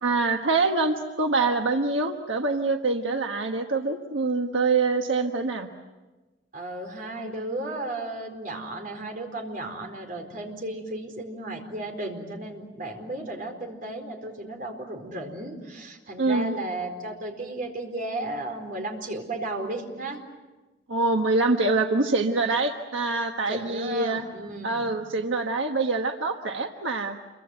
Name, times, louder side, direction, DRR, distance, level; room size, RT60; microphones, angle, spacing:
voice 1, 0.0-5.7 16.2-16.5 20.9-24.3 24.6-27.2, right 3 dB, 85° right, 4 dB, 1.4 m, -25 dB
voice 2, 6.5-20.2 23.5-25.0, right 2 dB, 45° right, 3 dB, 4.4 m, -34 dB
28.0 x 24.0 x 7.9 m, 1.2 s
head